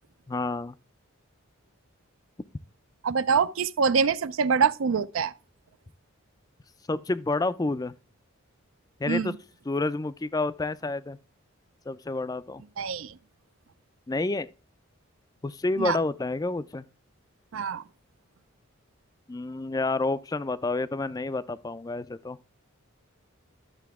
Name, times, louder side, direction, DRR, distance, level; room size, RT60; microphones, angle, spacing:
voice 1, 0.3-0.7 6.9-7.9 9.0-9.3 9.7-11.2 11.9-12.6 14.1-14.5 15.4-16.8 19.3-22.4, left 2 dB, 15° left, 0.3 m, -29 dB
voice 2, 3.0-5.3 9.1-9.4 12.8-13.2 15.8-16.0 17.5-17.8, right 6 dB, 70° right, 0.4 m, -25 dB
11.5 x 6.7 x 3.5 m
head